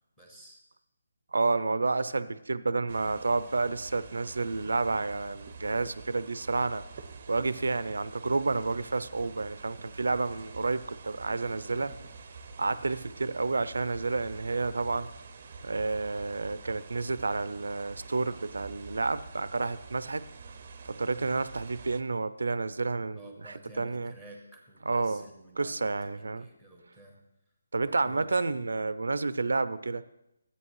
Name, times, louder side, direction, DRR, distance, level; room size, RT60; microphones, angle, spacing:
voice 1, 0.2-0.6 23.1-27.3 27.8-28.6, right 1 dB, 5° left, 2 dB, 0.9 m, -51 dB
voice 2, 1.3-6.8 7.3-11.9 12.6-15.1 15.6-20.2 20.9-24.1 24.9-25.2 25.6-26.5 27.7-30.0, right 3 dB, 80° right, 15 dB, 0.4 m, -30 dB
sound 1, 2.9-22.0, right 4 dB, 25° right, 0.5 m, -47 dB
12.5 x 8.4 x 3.1 m, 0.87 s
hypercardioid pair, 175°, 0 cm